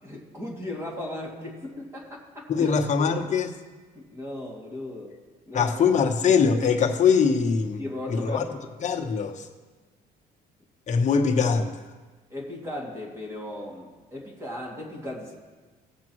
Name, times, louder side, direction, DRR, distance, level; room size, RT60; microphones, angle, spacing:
voice 1, 0.0-2.7 3.0-3.1 3.9-5.2 5.5-6.0 7.8-8.6 12.3-15.3, left 1 dB, 15° right, -2 dB, 2.3 m, -37 dB
voice 2, 2.5-3.5 5.5-7.8 8.1-8.4 8.8-9.5 10.9-11.7, left 6 dB, 45° left, 3 dB, 1.1 m, -22 dB
18.0 x 7.4 x 3.1 m, 1.3 s
cardioid pair, 110°, 17 cm